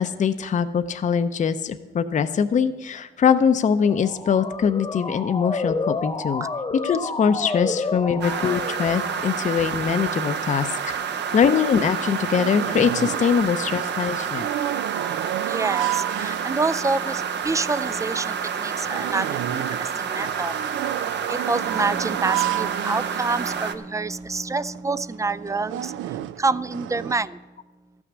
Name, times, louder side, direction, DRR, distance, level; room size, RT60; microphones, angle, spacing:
voice 1, 0.0-6.5 6.8-11.0 11.3-14.5, left 7 dB, 40° left, 10 dB, 0.6 m, -22 dB
Motor vehicle (road) / Siren, 3.7-9.6, left 3 dB, 25° left, 1.0 m, -30 dB
voice 2, 7.7-8.1 11.0-11.2 15.4-20.6 21.3-27.4, right 3 dB, 15° right, 17 dB, 0.3 m, -27 dB
sound 1, 8.2-23.8, right 7 dB, 60° right, 0.8 m, -29 dB
sound 2, 11.3-11.4 11.7-13.4 13.6-16.9 17.4-17.5 17.9-18.0 18.5-23.7 24.2-24.3 24.6-24.8 25.3-27.1, right 15 dB, 85° right, 0.4 m, -31 dB
13.0 x 6.1 x 8.1 m, 1.2 s
cardioid pair, 90°, 20 cm